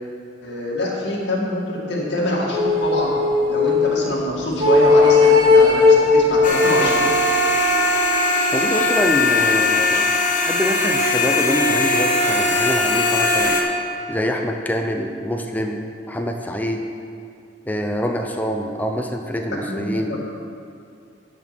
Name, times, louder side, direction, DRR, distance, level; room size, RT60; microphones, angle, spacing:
voice 1, 0.4-3.2 3.5-7.1 19.7-20.2, left 1 dB, 60° left, -4 dB, 2.3 m, -25 dB
sound 1, 2.5-4.0 4.6-7.4, left 3 dB, 25° right, 1.6 m, -16 dB
sound 2, 6.4-13.6, left 2 dB, 45° left, 1.0 m, -19 dB
voice 2, 8.5-10.1 10.4-13.6 14.1-16.8 17.7-20.2, equal, 10° left, 3 dB, 0.6 m, -25 dB
11.0 x 5.8 x 6.1 m, 2.4 s
head